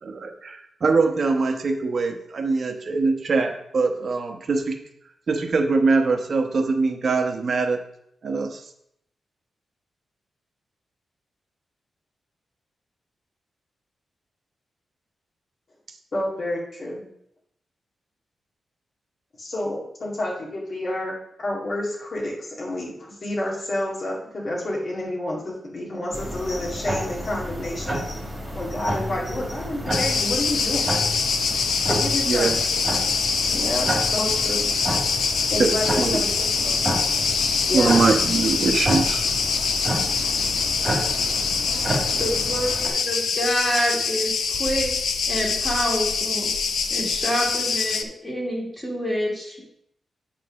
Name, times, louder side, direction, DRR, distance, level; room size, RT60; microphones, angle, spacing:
voice 1, 0.0-4.8 5.3-7.8 8.2-8.6 32.3-32.6 35.6-35.7 36.0-36.2 37.7-39.3, right 4 dB, 45° right, 4 dB, 1.1 m, -22 dB
voice 2, 16.1-17.0 19.4-28.2 28.6-31.0 31.9-32.5 33.5-34.6 35.5-36.3 36.5-36.9 37.6-38.0, left 1 dB, 40° left, -4 dB, 2.1 m, -29 dB
sound 1, 26.1-42.9, right 1 dB, 10° right, 2.1 m, -30 dB
Cricket, 29.9-48.0, left 5 dB, 80° left, 0.7 m, -24 dB
voice 3, 41.7-44.9 45.3-46.5 46.9-49.6, equal, 10° left, -2 dB, 2.2 m, -27 dB
8.9 x 3.7 x 6.4 m, 0.74 s
wide cardioid pair, 155°, 0 cm